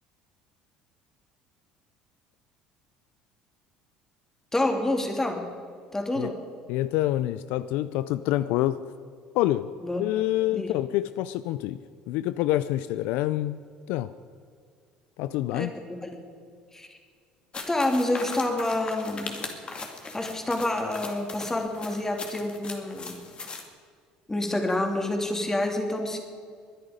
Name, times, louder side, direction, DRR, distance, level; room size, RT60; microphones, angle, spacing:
voice 1, 4.5-5.5 5.9-6.4 9.8-10.8 15.5-16.2 16.7-17.0 17.7-19.4 20.1-23.2 24.3-26.2, left 1 dB, 15° left, 3 dB, 2.8 m, -28 dB
voice 2, 6.7-8.8 9.3-9.7 10.0-11.8 12.1-14.1 15.2-15.7, left 14 dB, 75° left, 14 dB, 0.4 m, -27 dB
sound 1, 17.5-23.6, left 3 dB, 35° left, 2.3 m, -39 dB
21.0 x 10.5 x 5.1 m, 2.1 s
supercardioid pair, 75°, 3 cm